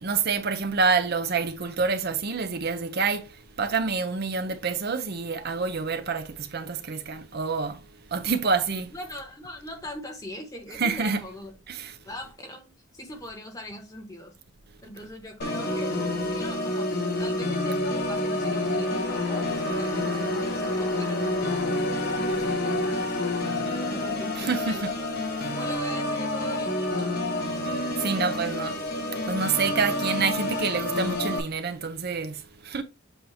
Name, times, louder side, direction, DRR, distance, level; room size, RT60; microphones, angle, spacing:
voice 1, 0.0-3.3 3.6-7.8 8.1-8.9 10.8-11.2 11.7-11.9 24.4-24.9 28.0-28.8 29.3-32.8, right 4 dB, 50° right, 0.7 m, -27 dB
voice 2, 8.9-11.5 12.0-14.3 14.8-24.8 25.4-27.2, left 1 dB, 15° left, 1.6 m, -41 dB
Organ, 15.4-31.4, left 1 dB, 50° left, 1.5 m, -28 dB
sound 1, 18.1-25.1, left 3 dB, 65° left, 3.1 m, -38 dB
7.8 x 2.8 x 4.2 m
head